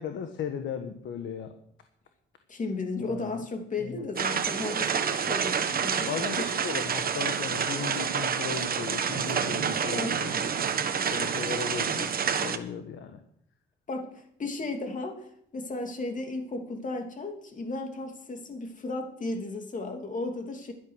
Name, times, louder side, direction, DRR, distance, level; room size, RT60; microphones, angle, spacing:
voice 1, 0.0-1.5 3.0-3.4 3.8-4.1 6.1-10.6 11.0-13.2, left 7 dB, 70° left, 7 dB, 1.4 m, -36 dB
voice 2, 2.5-6.5 9.9-10.4 13.9-15.3 15.5-20.7, left 3 dB, 40° left, 4 dB, 2.8 m, -35 dB
Rain and Hail Methow Valley, 4.2-12.6, right 7 dB, 50° right, 1.3 m, -28 dB
12.0 x 10.5 x 6.5 m, 0.69 s
cardioid pair, 90°, 20 cm